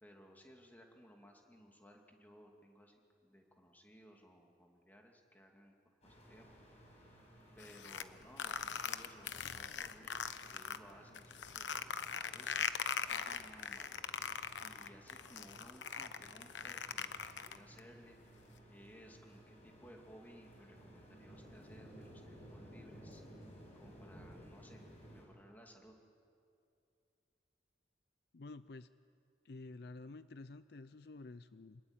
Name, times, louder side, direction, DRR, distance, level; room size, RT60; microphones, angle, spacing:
voice 1, 0.0-5.7 6.0-6.7 7.5-12.7 13.1-14.0 14.6-18.2 18.7-23.2 23.8-24.8 25.1-25.9, equal, 10° left, 1 dB, 2.5 m, -60 dB
sound 1, 6.0-25.2, equal, 35° left, 7.0 m, -58 dB
sound 2, 7.6-10.8 11.1-17.8, left 7 dB, 80° left, 1.0 m, -40 dB
voice 2, 28.3-28.9 29.4-31.8, left 3 dB, 60° left, 13 dB, 0.5 m, -50 dB
27.0 x 20.5 x 8.9 m, 2.5 s
head